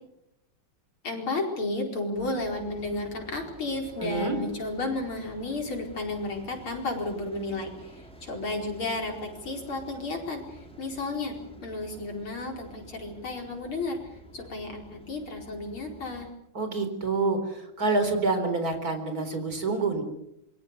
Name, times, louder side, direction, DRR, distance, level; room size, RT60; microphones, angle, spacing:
voice 1, 1.0-11.4 11.6-14.0 14.3-16.3, left 2 dB, 80° left, 2 dB, 5.6 m, -33 dB
sound 1, 2.1-16.3, right 2 dB, 5° left, 5.1 m, -50 dB
voice 2, 4.0-4.4 16.5-20.0, right 3 dB, 45° right, 7 dB, 4.7 m, -27 dB
27.0 x 23.5 x 6.8 m, 0.80 s
omnidirectional pair, 2.3 m